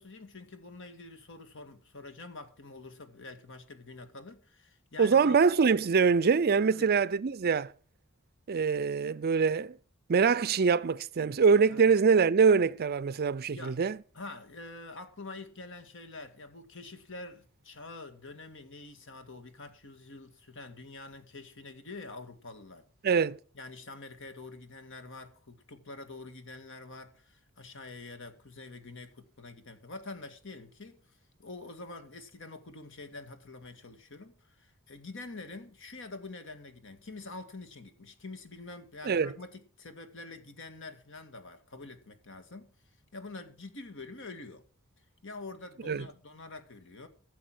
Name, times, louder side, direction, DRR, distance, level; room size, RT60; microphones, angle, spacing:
voice 1, 0.0-5.4 6.7-6.9 11.7-11.9 13.5-13.8 14.1-22.8 23.5-31.0 31.4-42.7 43.1-44.6 45.2-47.1, left 3 dB, 60° left, 1.9 m, -46 dB
voice 2, 5.0-7.7 8.5-9.7 10.1-14.0 23.0-23.4 39.0-39.3 45.9-46.1, right 5 dB, 45° right, 0.5 m, -24 dB
14.5 x 7.1 x 6.2 m
head